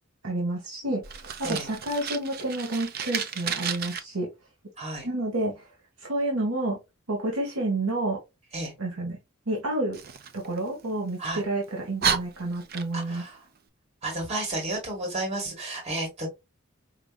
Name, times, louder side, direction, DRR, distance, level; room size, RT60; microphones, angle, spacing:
voice 1, 0.2-4.3 5.0-5.7 6.0-6.8 7.1-8.2 8.8-9.2 9.5-10.0 10.3-13.2, right 2 dB, 85° right, -1 dB, 1.1 m, -29 dB
Fire, 1.0-4.0 9.9-11.2 11.6-11.7 12.0-13.2, right 7 dB, 45° right, 0.5 m, -32 dB
voice 2, 4.8-5.1 8.5-8.7 11.2-11.4 12.9-13.4 14.0-16.3, right 2 dB, 30° right, 1 dB, 1.4 m, -32 dB
4.9 x 2.5 x 2.2 m, 0.22 s
head